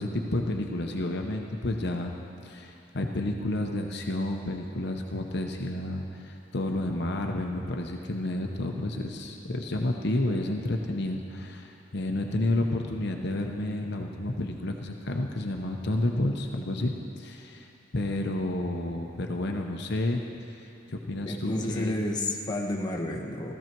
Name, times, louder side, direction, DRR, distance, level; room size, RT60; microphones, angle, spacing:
voice 1, 0.0-2.1 2.4-17.7 17.9-20.2 20.5-21.9, left 1 dB, 60° left, 2 dB, 0.8 m, -30 dB
voice 2, 21.3-23.5, left 1 dB, 20° left, -1 dB, 1.2 m, -30 dB
17.0 x 14.0 x 4.6 m, 2.9 s
head